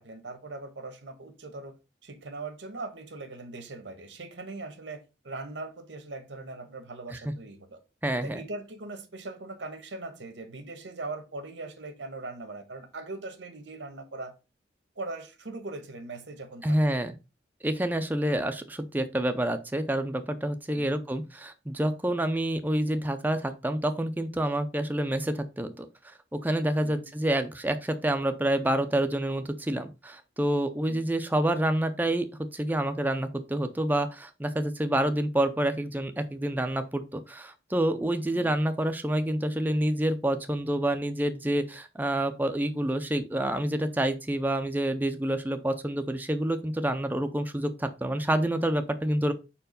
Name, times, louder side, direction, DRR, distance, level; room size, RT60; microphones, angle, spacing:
voice 1, 0.0-1.7 2.0-7.8 8.2-14.3 15.0-17.0 20.7-21.0 26.8-27.1 30.8-31.1, right 2 dB, 80° right, 1.3 m, -40 dB
voice 2, 8.0-8.4 16.6-17.1 17.6-32.3 32.5-49.3, right 1 dB, 10° right, 0.5 m, -28 dB
5.0 x 4.6 x 5.1 m
head